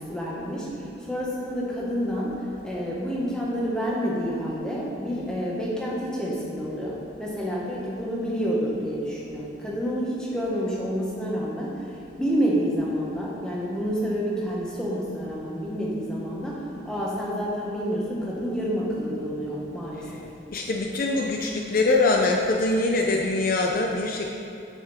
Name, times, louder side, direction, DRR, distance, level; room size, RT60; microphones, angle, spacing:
voice 1, 0.0-20.2, equal, 5° left, -6 dB, 1.3 m, -29 dB
voice 2, 20.5-24.3, left 2 dB, 45° left, 0 dB, 0.5 m, -23 dB
8.3 x 5.9 x 4.2 m, 2.8 s
head